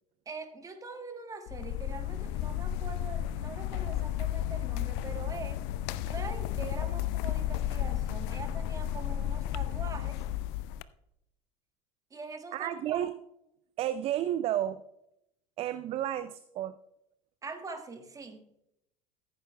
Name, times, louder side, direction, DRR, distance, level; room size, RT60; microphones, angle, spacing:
voice 1, 0.2-5.6 6.0-10.2 12.1-13.0 17.4-18.5, right 4 dB, 20° right, 7 dB, 1.6 m, -43 dB
sound 1, 1.5-10.8, left 12 dB, 50° left, 0.5 m, -33 dB
voice 2, 12.5-13.1 13.8-14.8 15.6-16.8, right 11 dB, 35° right, 14 dB, 0.5 m, -31 dB
15.5 x 14.5 x 2.2 m, 0.83 s
figure-of-eight pair, 70°, 17 cm